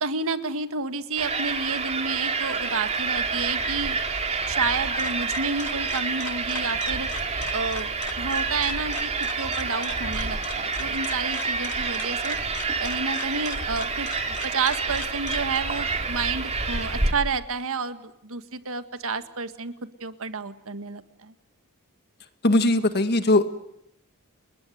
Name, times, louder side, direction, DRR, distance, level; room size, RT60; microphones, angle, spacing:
voice 1, 0.0-4.0 4.5-7.1 7.5-9.1 9.4-12.4 12.8-19.7 20.0-21.3, right 4 dB, 65° right, 10 dB, 1.8 m, -30 dB
sound 1, 1.2-17.1, right 4 dB, 30° right, 2.9 m, -28 dB
sound 2, 4.5-15.6, left 7 dB, 85° left, 2.5 m, -41 dB
voice 2, 22.4-23.5, left 2 dB, 50° left, 9 dB, 1.8 m, -20 dB
29.5 x 21.0 x 9.5 m, 0.79 s
head